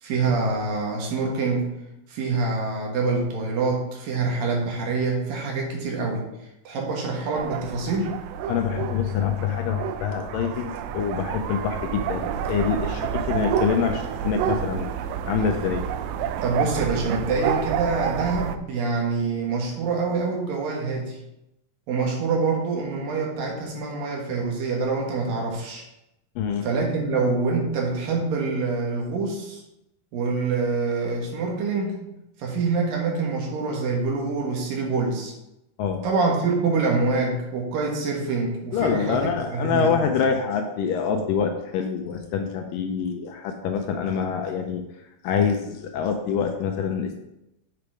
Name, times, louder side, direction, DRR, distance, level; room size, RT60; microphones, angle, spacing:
voice 1, 0.0-1.7 2.1-6.3 6.6-8.2 16.4-21.2 21.9-25.8 26.6-29.6 30.1-32.0 32.4-35.3 36.0-40.0, right 4 dB, 70° right, -1 dB, 3.1 m, -25 dB
sound 1, 7.3-18.6, right 8 dB, 85° right, 2.4 m, -29 dB
voice 2, 8.5-14.9 15.3-15.8 26.4-26.7 35.8-36.0 38.7-44.8 45.2-47.2, left 6 dB, 80° left, 4 dB, 2.1 m, -25 dB
6.9 x 6.9 x 4.8 m, 0.88 s
omnidirectional pair, 4.4 m